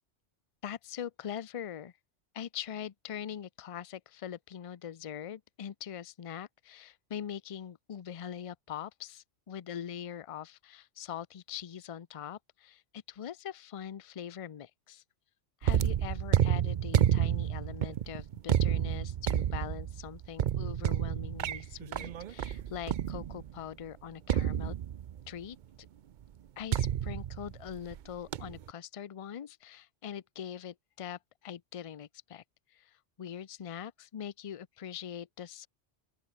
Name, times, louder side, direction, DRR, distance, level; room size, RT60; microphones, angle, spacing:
voice 1, 0.6-1.9 2.3-15.0 15.6-24.8 25.3-25.6 26.6-32.4 32.7-35.7, left 9 dB, 40° left, 0.5 m, -42 dB
sound 1, 15.6-23.6 24.3-25.3 26.7-28.0 28.3-28.7, right 10 dB, 55° right, 0.5 m, -30 dB
open air
omnidirectional pair, 1.2 m